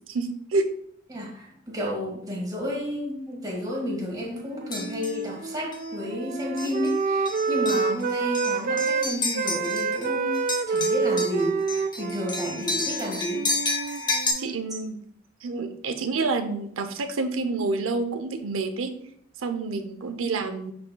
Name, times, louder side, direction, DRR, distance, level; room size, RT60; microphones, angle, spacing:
voice 1, 0.1-0.7 12.5-12.7 14.4-15.0 15.4-18.9 19.4-20.7, right 3 dB, 85° right, 7 dB, 0.6 m, -28 dB
voice 2, 1.1-10.4 10.7-13.5 19.6-19.8, equal, 20° right, -2 dB, 1.6 m, -31 dB
Wind instrument woodwind instrument, 4.2-9.1 9.3-14.7, right 4 dB, 45° right, 0.3 m, -28 dB
sound 1, 4.7-5.2 5.7-5.9 6.6-6.9 7.3-10.1 10.3-14.3, left 3 dB, 25° left, 1.0 m, -31 dB
10.5 x 4.3 x 2.2 m, 0.67 s
head